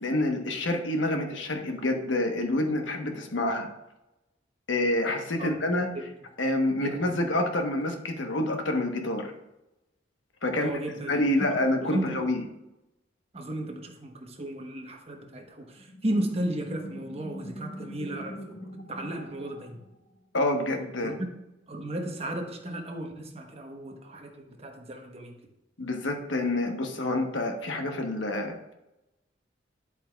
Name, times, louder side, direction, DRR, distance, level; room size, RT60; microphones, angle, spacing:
voice 1, 0.0-3.7 4.7-5.9 6.4-9.3 10.4-10.7 11.1-12.4 20.3-21.1 25.8-28.7, left 1 dB, 75° left, 4 dB, 1.1 m, -27 dB
voice 2, 6.7-7.2 10.5-11.6 11.8-12.2 13.3-19.8 21.0-21.3 21.7-25.4, right 1 dB, 35° right, 2 dB, 1.1 m, -34 dB
sound 1, 15.8-20.3, equal, 45° left, 0.7 m, -42 dB
9.8 x 8.2 x 2.3 m, 0.94 s
head